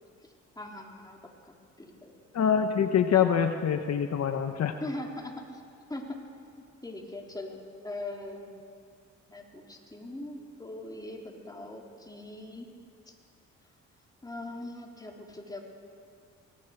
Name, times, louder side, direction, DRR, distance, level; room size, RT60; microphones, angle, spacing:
voice 1, 0.6-2.2 4.8-5.6 5.9-6.3 6.6-8.5 9.3-12.8 13.1-13.2 14.2-15.6, left 1 dB, 10° left, 0 dB, 3.6 m, -41 dB
voice 2, 2.3-4.8, left 8 dB, 60° left, 6 dB, 1.1 m, -25 dB
25.0 x 18.5 x 6.7 m, 2.3 s
cardioid pair, 90°, 30 cm